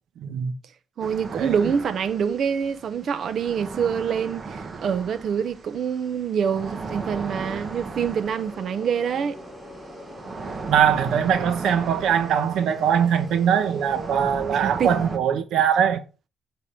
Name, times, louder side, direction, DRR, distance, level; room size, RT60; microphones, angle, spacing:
voice 1, 0.2-0.5 1.3-1.5 10.7-16.0, right 8 dB, 75° right, 1.3 m, -22 dB
sound 1, 1.0-15.2, right 4 dB, 40° right, 1.4 m, -37 dB
voice 2, 1.0-9.4 14.6-15.0, right 7 dB, 60° right, 0.9 m, -26 dB
sound 2, 6.9-14.1, equal, 15° right, 4.0 m, -43 dB
10.5 x 4.1 x 7.0 m
cardioid pair, 90°, 0 cm